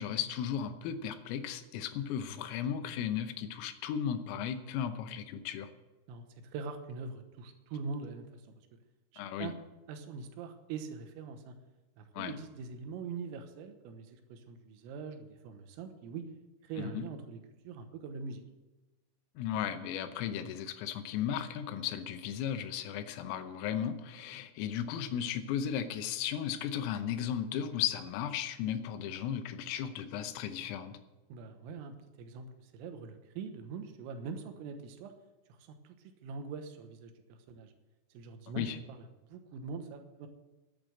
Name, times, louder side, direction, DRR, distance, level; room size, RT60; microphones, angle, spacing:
voice 1, 0.0-5.7 9.2-9.5 12.2-12.3 16.8-17.1 19.4-31.0 38.6-38.8, left 9 dB, 85° left, 9 dB, 3.6 m, -35 dB
voice 2, 6.5-8.4 9.1-9.5 9.9-11.6 12.0-16.3 16.6-18.4 31.3-35.1 35.6-36.0 36.2-37.7 38.2-40.3, right 5 dB, 85° right, 7 dB, 3.8 m, -43 dB
11.5 x 8.9 x 7.8 m, 1.1 s
omnidirectional pair, 5.8 m